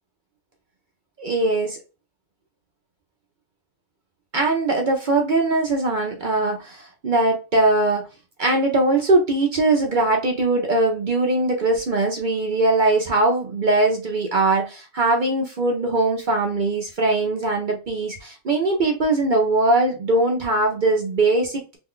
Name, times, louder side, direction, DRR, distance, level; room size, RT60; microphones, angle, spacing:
voice 1, 1.2-1.8 4.3-8.1 8.4-21.8, right 2 dB, 50° right, 0.6 m, -21 dB
3.1 x 2.3 x 3.6 m
omnidirectional pair, 1.4 m